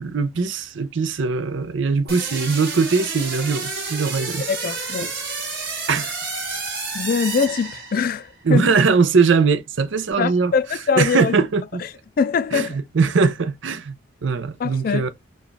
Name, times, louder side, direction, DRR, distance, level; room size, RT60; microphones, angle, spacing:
voice 1, 0.0-4.5 5.0-5.1 5.9-6.1 8.4-10.5 11.0-11.6 12.5-14.0 14.2-15.1, right 4 dB, 85° right, 0.6 m, -20 dB
sound 1, 2.1-8.3, right 4 dB, 55° right, 2.0 m, -30 dB
voice 2, 4.5-5.1 6.9-8.6 10.2-11.4 12.2-12.8 14.6-15.1, left 6 dB, 50° left, 0.3 m, -23 dB
4.1 x 2.3 x 3.3 m
head